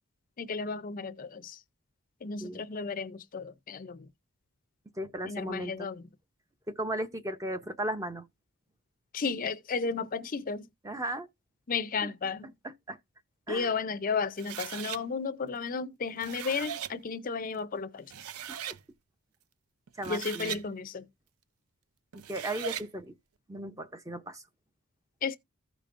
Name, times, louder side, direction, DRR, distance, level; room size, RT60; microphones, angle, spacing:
voice 1, 0.4-1.6 2.2-4.1 5.2-6.0 9.1-10.7 11.7-12.5 13.5-18.0 20.1-21.0 25.2-25.4, left 5 dB, 40° left, 0.5 m, -33 dB
voice 2, 5.0-5.9 6.7-8.2 10.8-11.3 12.0-12.1 12.6-13.0 13.5-13.7 18.7-18.8 20.0-20.6 22.1-23.1 23.5-24.4, right 1 dB, 15° right, 0.6 m, -36 dB
sound 1, 14.4-15.0 16.0-16.9 17.7-17.8 18.1-18.8 19.9-20.6 22.1-22.9, right 9 dB, 80° right, 0.5 m, -39 dB
15.0 x 5.1 x 2.5 m
head